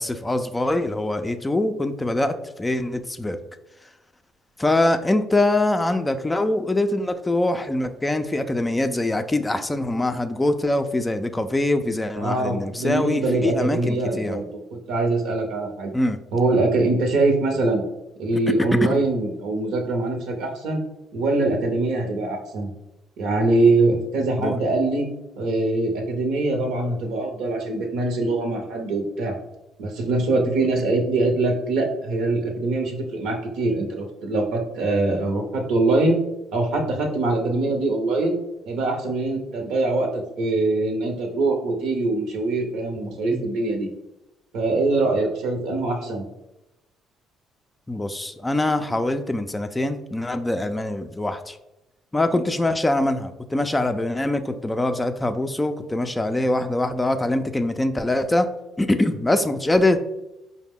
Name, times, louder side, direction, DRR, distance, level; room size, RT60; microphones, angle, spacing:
voice 1, 0.0-3.4 4.6-14.4 15.9-16.2 18.8-19.0 24.4-24.5 43.0-43.5 47.9-51.6 52.1-58.5 58.8-60.0, left 1 dB, 15° left, 8 dB, 0.4 m, -23 dB
voice 2, 12.1-14.5 14.7-15.9 16.3-17.8 18.2-20.8 21.1-22.7 23.2-25.0 25.4-29.3 29.8-36.2 36.5-38.4 38.7-43.9 44.5-46.3, right 2 dB, 75° right, 3 dB, 0.8 m, -23 dB
4.8 x 2.1 x 3.6 m, 0.92 s
supercardioid pair, 60°, 0 cm